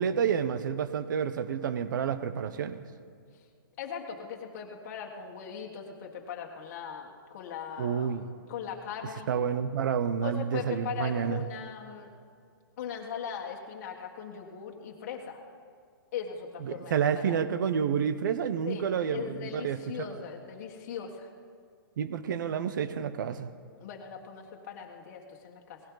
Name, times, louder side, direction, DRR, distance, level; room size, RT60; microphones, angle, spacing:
voice 1, 0.0-2.8 7.8-8.3 9.3-11.4 16.6-20.2 22.0-23.5, right 7 dB, 60° right, 13 dB, 0.9 m, -29 dB
voice 2, 3.8-8.2 8.5-9.3 10.2-12.1 12.8-15.4 16.1-17.4 18.7-21.3 23.8-25.8, left 7 dB, 40° left, 0 dB, 1.7 m, -39 dB
18.0 x 16.5 x 4.0 m, 2.2 s
hypercardioid pair, 160°, 12 cm